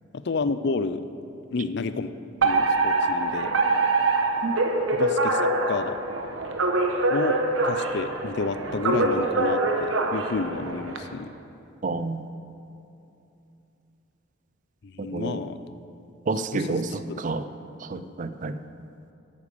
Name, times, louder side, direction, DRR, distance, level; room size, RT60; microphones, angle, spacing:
voice 1, 0.1-1.0 1.5-3.5 4.9-6.0 7.1-7.4 7.6-11.3 14.8-15.6 16.5-17.2, left 4 dB, 55° left, 12 dB, 0.5 m, -30 dB
Alarm, 2.4-11.0, right 2 dB, 75° right, 1.0 m, -24 dB
voice 2, 11.8-12.3 15.1-15.4 16.3-17.4 17.9-18.5, right 3 dB, 40° right, 11 dB, 0.4 m, -29 dB
10.0 x 8.3 x 6.8 m, 2.8 s
head